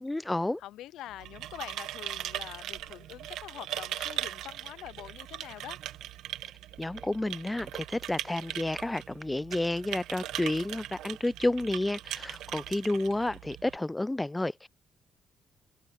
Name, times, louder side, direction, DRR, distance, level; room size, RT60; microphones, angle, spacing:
voice 1, 0.0-0.6 6.8-14.7, left 1 dB, 10° left, 0.3 m, -30 dB
voice 2, 0.6-5.8, left 13 dB, 85° left, 0.4 m, -45 dB
sound 1, 1.1-13.8, right 13 dB, 85° right, 1.0 m, -40 dB
cardioid pair, 90°, 0 cm